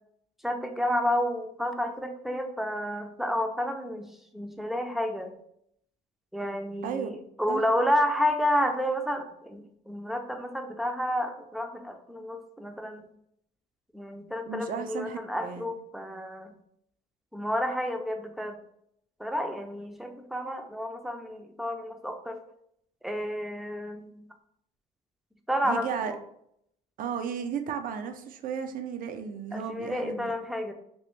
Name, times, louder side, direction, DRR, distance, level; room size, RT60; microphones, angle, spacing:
voice 1, 0.4-4.1 4.3-5.3 6.3-13.1 13.9-16.5 17.3-18.6 19.2-22.4 23.0-24.2 25.5-26.2 29.5-30.7, equal, ahead, 5 dB, 0.4 m, -30 dB
voice 2, 14.5-15.7 25.6-26.1 27.0-30.3, right 7 dB, 55° right, 7 dB, 0.5 m, -34 dB
3.0 x 2.9 x 3.2 m, 0.72 s
cardioid pair, 110°, 17 cm